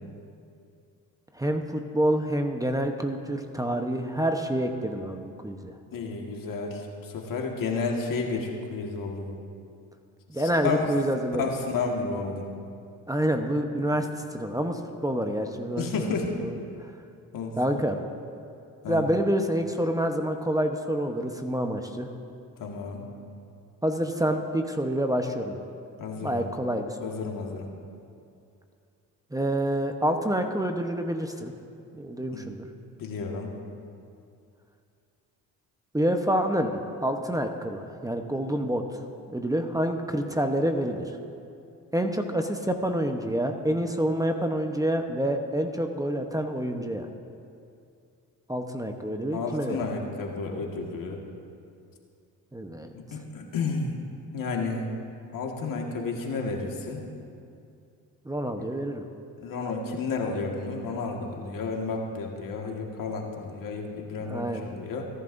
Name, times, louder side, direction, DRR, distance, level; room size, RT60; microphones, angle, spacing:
voice 1, 1.3-5.7 10.3-11.4 13.1-16.6 17.6-18.0 18.9-22.1 23.8-25.6 26.2-27.1 29.3-31.5 31.9-32.7 35.9-39.0 39.3-41.1 41.9-47.1 48.5-49.8 52.5-52.9 58.2-59.0 64.2-64.7, right 1 dB, 10° right, 5 dB, 1.0 m, -27 dB
voice 2, 5.9-9.4 10.3-10.9 11.4-12.5 15.8-16.4 17.3-17.8 18.8-19.0 22.6-23.0 26.0-26.5 27.0-27.7 32.3-32.5 33.0-33.5 49.3-51.2 52.9-54.0 54.3-54.9 55.3-57.0 58.5-58.7 59.4-65.1, left 4 dB, 60° left, 1 dB, 1.8 m, -31 dB
24.5 x 11.0 x 2.7 m, 2.5 s
supercardioid pair, 65°, 37 cm